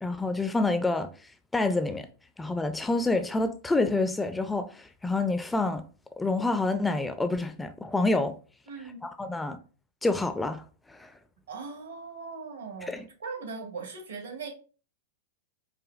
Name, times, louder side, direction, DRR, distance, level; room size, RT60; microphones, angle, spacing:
voice 1, 0.0-1.1 1.5-2.1 2.4-5.8 6.2-8.4 9.0-9.6 10.0-10.6 10.9-11.1 12.9-13.0, left 2 dB, 10° left, 0.3 m, -27 dB
voice 2, 8.7-9.1 11.5-14.5, right 4 dB, 85° right, 1.5 m, -39 dB
4.9 x 2.3 x 2.4 m
hypercardioid pair, 110°, 0 cm